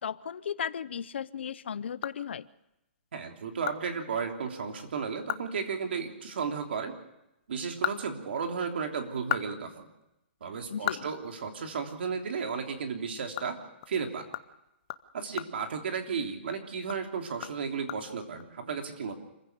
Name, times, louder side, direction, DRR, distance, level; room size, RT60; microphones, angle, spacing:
voice 1, 0.0-2.5 10.7-11.1, left 8 dB, 65° left, 18 dB, 0.7 m, -35 dB
sound 1, 1.6-2.8 3.2-3.3 3.6-3.8 4.1-4.2 4.7-4.8 5.1-5.5 5.8-5.9 7.4-8.7 9.1-12.0 12.3-12.5 12.8-16.4 16.8-18.4, left 15 dB, 25° left, 0.7 m, -38 dB
voice 2, 3.1-6.9 7.5-9.9 10.4-13.6 13.9-14.2 15.1-19.1, right 6 dB, 60° right, 4 dB, 3.2 m, -34 dB
26.5 x 15.5 x 6.7 m, 0.89 s
hypercardioid pair, 175°, 7 cm